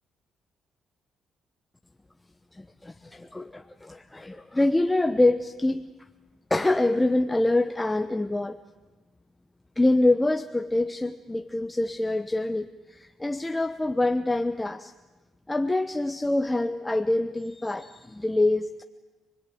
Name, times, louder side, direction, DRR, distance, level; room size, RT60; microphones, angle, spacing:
voice 1, 2.5-5.9 6.5-8.6 9.8-14.9 15.5-18.8, left 2 dB, 15° left, 8 dB, 0.9 m, -25 dB
28.0 x 20.5 x 9.3 m, 1.2 s
cardioid pair, 90°, 0 cm